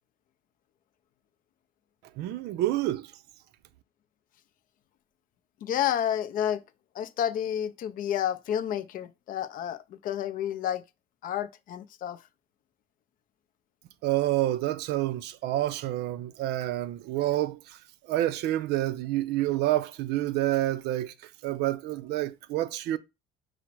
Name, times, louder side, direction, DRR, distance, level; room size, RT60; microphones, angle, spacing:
voice 1, 2.2-3.1 14.0-23.0, right 15 dB, 75° right, 0.4 m, -28 dB
voice 2, 5.6-6.6 7.0-9.8 10.0-10.8 11.2-12.2, left 10 dB, 50° left, 0.4 m, -30 dB
4.9 x 2.0 x 4.4 m
cardioid pair, 120°, 18 cm